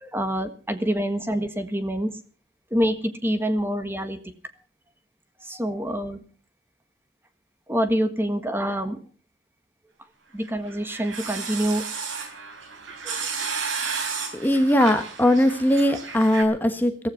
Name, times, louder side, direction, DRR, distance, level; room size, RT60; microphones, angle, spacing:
voice 1, 0.0-2.1 2.7-4.2 5.4-6.2 7.7-9.0 10.3-11.8 13.0-13.3, equal, 10° right, 9 dB, 1.5 m, -26 dB
sound 1, 10.5-16.4, right 5 dB, 90° right, 3.6 m, -32 dB
voice 2, 14.3-17.1, left 1 dB, 10° left, 7 dB, 1.3 m, -20 dB
15.5 x 15.5 x 5.7 m, 0.39 s
head